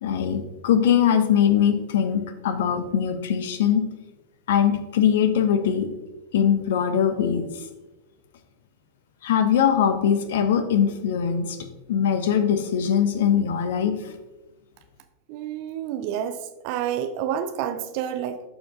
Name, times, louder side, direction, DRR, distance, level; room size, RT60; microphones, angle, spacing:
voice 1, 0.0-3.8 4.5-5.9 6.3-7.5 9.2-14.0, left 8 dB, 55° left, 9 dB, 0.7 m, -21 dB
voice 2, 15.3-18.4, right 9 dB, 45° right, 9 dB, 0.4 m, -29 dB
12.0 x 4.5 x 2.6 m, 1.1 s
figure-of-eight pair, 90°, 0 cm